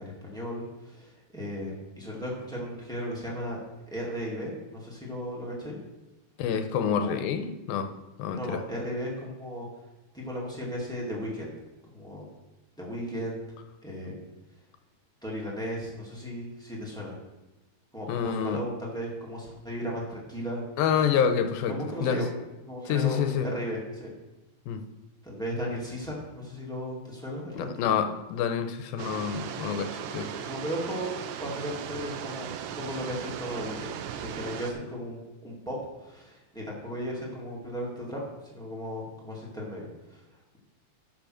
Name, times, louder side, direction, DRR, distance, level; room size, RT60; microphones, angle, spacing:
voice 1, 0.0-3.6 3.9-5.8 6.9-7.2 8.3-9.7 10.1-11.4 11.9-12.3 12.8-13.4 13.8-14.1 15.2-17.1 17.9-20.6 21.7-22.2 22.6-24.1 25.2-27.7 30.4-31.1 31.4-33.9 34.2-38.2 38.5-40.2, equal, ahead, -4 dB, 1.1 m, -36 dB
voice 2, 6.4-7.9 8.2-8.6 18.1-18.6 20.8-21.8 22.0-22.2 22.9-23.5 24.7-24.8 27.5-30.3, left 7 dB, 85° left, 8 dB, 2.5 m, -27 dB
sound 1, 29.0-34.7, right 8 dB, 75° right, 2.1 m, -37 dB
10.5 x 5.6 x 6.4 m, 1.1 s
omnidirectional pair, 4.3 m